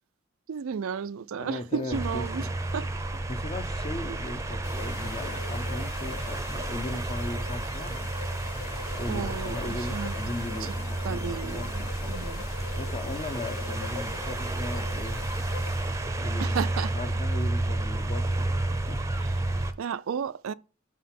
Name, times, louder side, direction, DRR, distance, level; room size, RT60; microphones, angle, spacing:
voice 1, 0.5-2.5 2.7-3.2 4.1-4.2 9.1-10.2 10.6-10.7 11.0-12.5 16.4-16.9 19.2-19.3 19.8-20.5, right 6 dB, 85° right, 0.4 m, -33 dB
voice 2, 1.4-2.5 3.3-8.1 9.0-12.2 12.8-15.2 15.8-16.6 16.9-19.0 19.4-19.6, left 2 dB, 30° left, 0.7 m, -38 dB
sound 1, 1.9-19.7, right 2 dB, 15° right, 0.6 m, -31 dB
sound 2, 4.6-16.4, left 8 dB, 90° left, 0.5 m, -44 dB
6.2 x 5.8 x 5.9 m
head